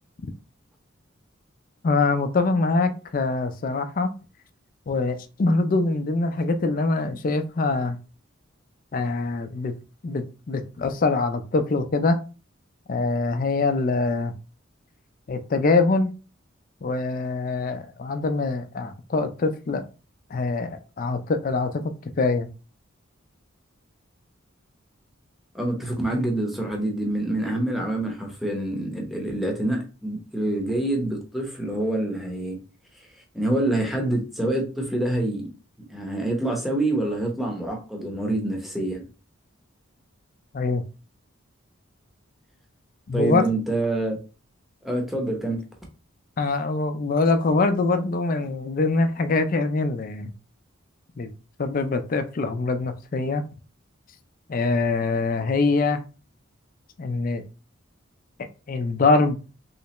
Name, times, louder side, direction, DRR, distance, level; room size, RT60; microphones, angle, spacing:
voice 1, 1.8-4.1 4.9-8.0 8.9-9.7 10.0-12.2 12.9-14.3 15.3-16.1 16.8-19.8 20.3-22.5 40.5-40.8 43.1-43.4 46.4-50.3 51.2-51.3 51.6-53.4 54.5-56.0 57.0-57.4 58.7-59.4, left 3 dB, 45° left, 0.4 m, -24 dB
voice 2, 25.5-32.6 33.3-35.5 35.9-39.0 43.1-44.2 44.8-45.6, right 1 dB, ahead, 0.8 m, -26 dB
3.2 x 3.2 x 2.9 m
head